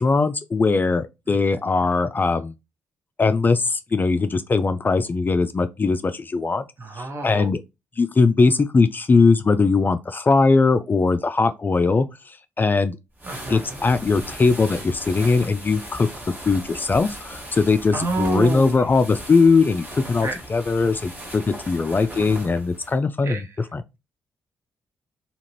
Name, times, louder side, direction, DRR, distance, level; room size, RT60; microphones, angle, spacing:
voice 1, 0.0-2.5 3.2-6.6 7.0-7.6 8.0-13.0 13.5-16.1 16.4-23.8, left 4 dB, 30° left, 0.3 m, -20 dB
voice 2, 6.8-7.5 13.2-13.6 17.9-18.7 20.2-20.4 23.2-23.4, right 3 dB, 45° right, 0.7 m, -28 dB
sound 1, 13.1-23.0, right 1 dB, 30° right, 1.5 m, -38 dB
2.8 x 2.5 x 2.9 m
hypercardioid pair, 40°, 7 cm